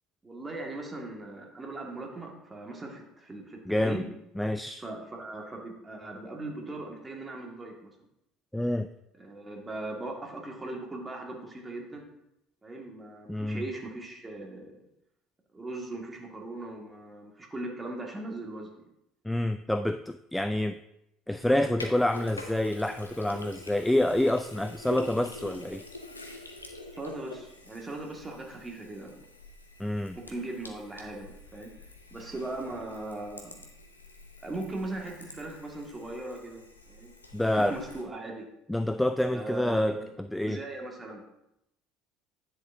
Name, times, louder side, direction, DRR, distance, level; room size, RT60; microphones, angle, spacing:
voice 1, 0.2-4.1 4.8-7.9 9.2-12.1 12.6-14.7 15.5-18.7 26.9-29.2 30.2-31.7 32.1-33.6 34.4-36.6 36.9-37.1 37.4-38.5 39.3-40.1 40.5-41.2, right 2 dB, 20° right, 0 dB, 2.0 m, -39 dB
voice 2, 3.7-4.0 4.4-4.8 8.5-8.9 13.3-13.6 19.2-20.8 21.3-25.8 29.8-30.2 37.3-37.8 38.7-40.6, left 1 dB, 5° left, 10 dB, 0.3 m, -27 dB
Sink (filling or washing), 21.4-38.0, left 2 dB, 90° left, 0.7 m, -47 dB
10.0 x 6.5 x 2.8 m, 0.84 s
figure-of-eight pair, 60°, 0 cm